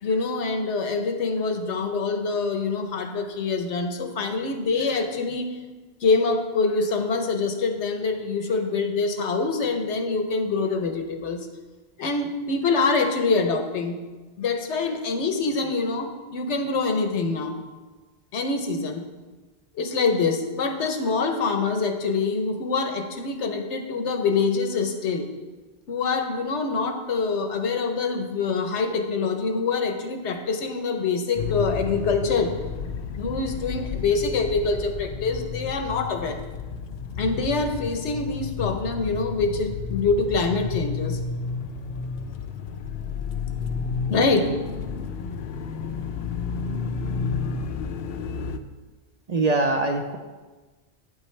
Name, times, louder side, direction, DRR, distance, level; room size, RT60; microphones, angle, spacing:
voice 1, 0.0-5.6 6.0-11.5 12.0-14.0 14.4-17.5 18.3-19.0 19.7-25.3 25.9-32.5 33.2-36.4 37.2-41.2 44.1-44.4, left 4 dB, 80° left, 6 dB, 1.2 m, -25 dB
sound 1, 31.4-48.6, left 5 dB, 65° left, 0.7 m, -31 dB
voice 2, 49.3-50.2, right 2 dB, 45° right, 4 dB, 0.6 m, -23 dB
9.3 x 8.5 x 3.3 m, 1.3 s
omnidirectional pair, 1.2 m